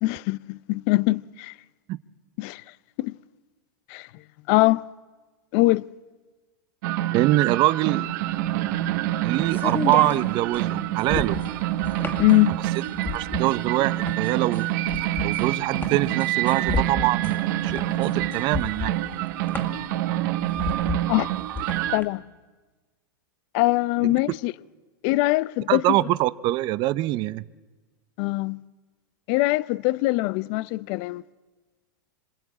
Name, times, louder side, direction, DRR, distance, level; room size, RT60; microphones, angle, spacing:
voice 1, 0.0-1.5 2.4-2.6 3.0-3.2 3.9-4.1 4.5-4.8 5.5-5.9 12.2-12.6 21.1-21.3 21.9-22.2 23.5-24.5 25.0-26.0 28.2-28.6 29.3-31.2, left 20 dB, 50° left, 0.8 m, -22 dB
sound 1, 6.8-22.0, right 14 dB, 55° right, 1.6 m, -27 dB
voice 2, 7.1-8.1 9.2-11.4 12.5-12.6 13.1-14.7 15.2-18.9 24.0-24.1 25.7-27.5, right 17 dB, 40° right, 0.9 m, -24 dB
sound 2, 8.2-22.0, left 4 dB, 15° left, 2.2 m, -33 dB
26.5 x 26.0 x 8.6 m
hypercardioid pair, 115°, 12 cm